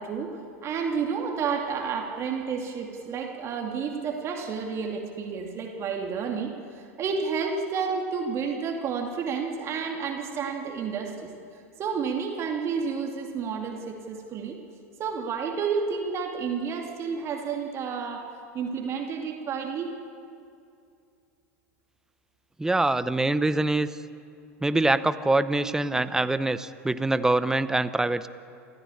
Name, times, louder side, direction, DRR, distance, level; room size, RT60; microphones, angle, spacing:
voice 1, 0.0-11.3 11.8-14.6 15.0-18.3 18.5-19.9, right 5 dB, 35° right, 2 dB, 2.6 m, -30 dB
voice 2, 22.6-23.9 24.6-28.3, right 2 dB, 5° right, 14 dB, 0.9 m, -24 dB
27.0 x 14.5 x 8.6 m, 2.5 s
figure-of-eight pair, 85°, 8 cm